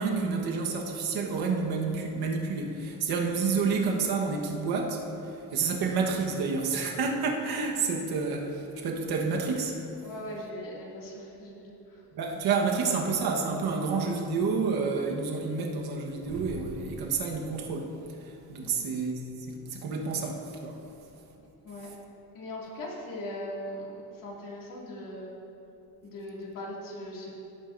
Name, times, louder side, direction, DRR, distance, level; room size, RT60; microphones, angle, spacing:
voice 1, 0.0-5.0 5.5-9.8 12.1-17.9 18.2-20.8, right 4 dB, 85° right, 0 dB, 1.3 m, -29 dB
voice 2, 10.0-12.0 18.6-18.8 21.6-21.9 22.3-25.3 26.0-27.3, left 1 dB, 60° left, -4 dB, 2.4 m, -40 dB
16.0 x 8.7 x 2.6 m, 2.9 s
cardioid pair, 160°, 37 cm